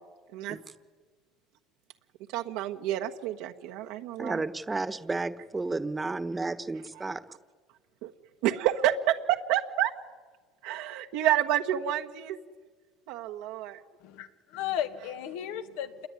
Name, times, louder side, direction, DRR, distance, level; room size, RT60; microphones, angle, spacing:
voice 1, 2.3-4.4 8.0-8.1 8.4-9.9 10.6-12.4 13.1-13.8, right 12 dB, 80° right, 1.3 m, -29 dB
voice 2, 4.2-7.2, right 3 dB, 15° right, 1.2 m, -32 dB
voice 3, 14.0-16.1, left 10 dB, 90° left, 2.1 m, -34 dB
28.0 x 21.5 x 9.8 m
cardioid pair, 140°, 0 cm